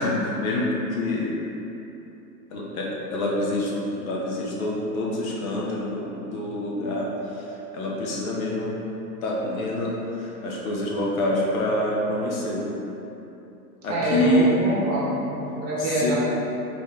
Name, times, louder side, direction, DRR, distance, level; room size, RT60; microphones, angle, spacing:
voice 1, 0.0-1.3 2.5-7.1 7.4-7.5 7.7-8.7 9.2-12.6 13.8-14.5 15.8-16.1, left 1 dB, 65° left, -4 dB, 1.1 m, -26 dB
voice 2, 13.9-16.1, right 1 dB, 30° right, -7 dB, 1.3 m, -25 dB
4.3 x 3.1 x 3.7 m, 3.0 s
hypercardioid pair, 120°, 46 cm